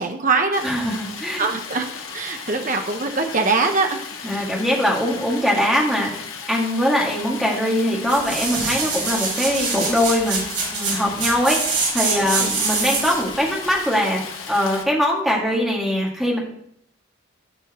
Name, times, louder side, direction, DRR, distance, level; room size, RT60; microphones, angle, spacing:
voice 1, 0.0-0.6 1.4-1.9 2.1-4.4 12.4-12.5, right 4 dB, 40° right, 4 dB, 0.8 m, -23 dB
Stream, 0.5-14.8, left 6 dB, 80° left, 1.4 m, -35 dB
voice 2, 0.6-1.5 4.2-10.4 10.7-11.6 11.9-14.2 14.5-16.4, equal, ahead, -3 dB, 2.0 m, -22 dB
sound 1, 8.0-13.3 13.8-13.9, right 4 dB, 55° right, 4.1 m, -24 dB
15.5 x 5.6 x 3.0 m, 0.71 s
head